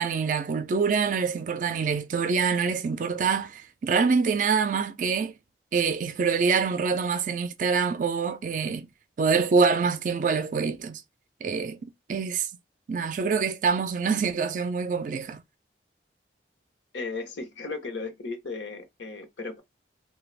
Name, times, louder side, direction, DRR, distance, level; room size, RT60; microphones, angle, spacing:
voice 1, 0.0-5.3 5.7-8.9 9.2-11.0 11.4-12.5 12.9-15.4, right 5 dB, 45° right, 0.3 m, -25 dB
voice 2, 16.9-19.6, left 3 dB, 90° left, 0.8 m, -35 dB
3.2 x 2.2 x 2.3 m
head